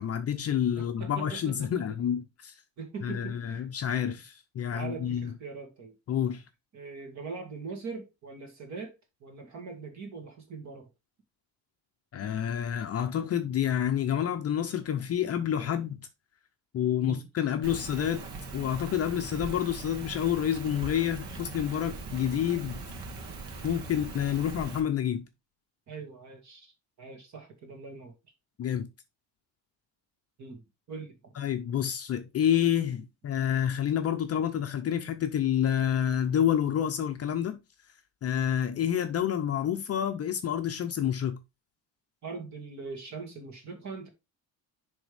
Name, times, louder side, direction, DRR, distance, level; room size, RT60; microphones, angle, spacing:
voice 1, 0.0-2.5 3.0-5.3 6.1-6.4 12.1-16.0 16.7-18.2 18.5-22.8 23.6-25.3 28.6-28.9 31.4-37.6 38.2-41.4, left 9 dB, 35° left, 0.6 m, -28 dB
voice 2, 0.8-2.0 2.8-3.7 4.7-6.0 6.7-10.9 17.0-17.2 23.6-23.8 25.9-26.7 27.0-28.1 30.4-30.6 30.9-31.3 42.2-44.1, right 4 dB, 40° right, 2.0 m, -42 dB
Rain, 17.6-24.8, right 3 dB, 70° right, 1.7 m, -41 dB
10.5 x 3.5 x 3.3 m
cardioid pair, 165°, 43 cm